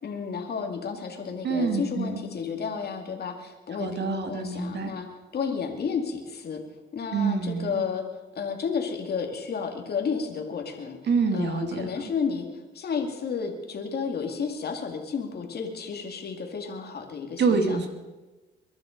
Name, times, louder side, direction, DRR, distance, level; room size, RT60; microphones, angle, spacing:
voice 1, 0.0-5.1 5.3-6.6 6.9-8.0 8.3-11.0 11.3-17.8, left 6 dB, 55° left, 3 dB, 2.3 m, -32 dB
voice 2, 1.4-2.2 3.8-4.9 7.1-7.8 11.1-11.9 17.4-17.9, right 4 dB, 60° right, 6 dB, 2.3 m, -26 dB
22.5 x 11.0 x 5.2 m, 1.2 s
cardioid pair, 90°, 20 cm